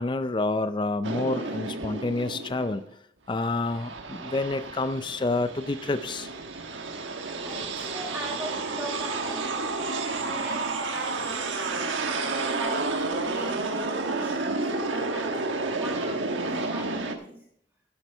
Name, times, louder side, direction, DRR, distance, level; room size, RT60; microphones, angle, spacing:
voice 1, 0.0-2.8 3.3-6.3, left 2 dB, 25° left, 11 dB, 0.4 m, -28 dB
sound 1, 1.0-2.9 3.3-17.2, right 3 dB, 85° right, 1.3 m, -31 dB
voice 2, 7.0-9.7 10.2-17.5, right 1 dB, 10° right, -3 dB, 1.4 m, -40 dB
12.5 x 10.5 x 3.4 m, 0.67 s
head